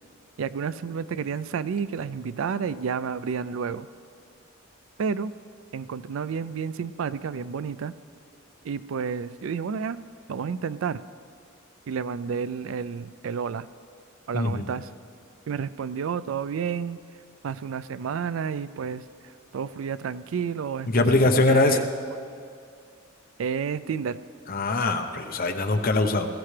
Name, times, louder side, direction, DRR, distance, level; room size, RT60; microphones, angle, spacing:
voice 1, 0.4-3.9 5.0-5.3 5.7-7.9 8.6-10.0 10.3-11.0 11.9-13.7 14.3-14.9 15.5-17.0 17.4-19.0 19.5-21.9 23.4-24.2, right 6 dB, 70° right, 16 dB, 0.4 m, -30 dB
voice 2, 14.3-14.7 20.9-21.8 24.5-26.3, left 2 dB, 45° left, 5 dB, 0.9 m, -22 dB
19.5 x 15.5 x 3.3 m, 2.3 s
head